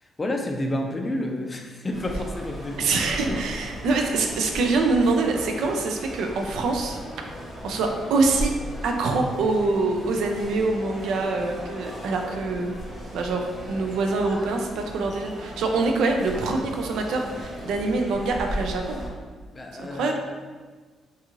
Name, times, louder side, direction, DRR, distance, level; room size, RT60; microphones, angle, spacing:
voice 1, 0.0-3.4 19.5-20.1, left 1 dB, 25° left, 2 dB, 0.4 m, -30 dB
sound 1, 1.9-19.1, equal, 25° right, 0.8 m, -37 dB
voice 2, 2.8-7.0 7.6-8.5 8.8-12.7 13.1-19.0 19.8-20.1, right 3 dB, 80° right, 3 dB, 0.3 m, -25 dB
2.6 x 2.4 x 2.9 m, 1.4 s
cardioid pair, 90°, 0 cm